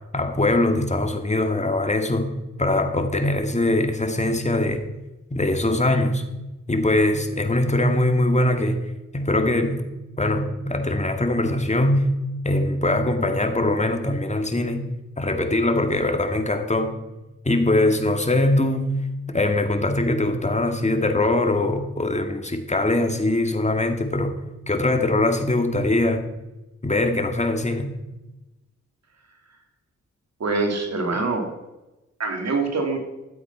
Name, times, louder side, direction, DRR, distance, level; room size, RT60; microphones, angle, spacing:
voice 1, 0.1-2.3 2.6-4.8 5.3-6.2 6.7-8.8 9.1-9.9 10.2-12.1 12.4-14.9 15.2-16.9 17.5-18.9 19.3-24.3 24.7-26.2 26.8-27.9, left 2 dB, 25° left, 5 dB, 2.2 m, -22 dB
voice 2, 30.4-31.5 32.2-33.0, right 3 dB, 60° right, 4 dB, 2.9 m, -24 dB
12.5 x 8.0 x 5.8 m, 1.0 s
supercardioid pair, 40°, 29 cm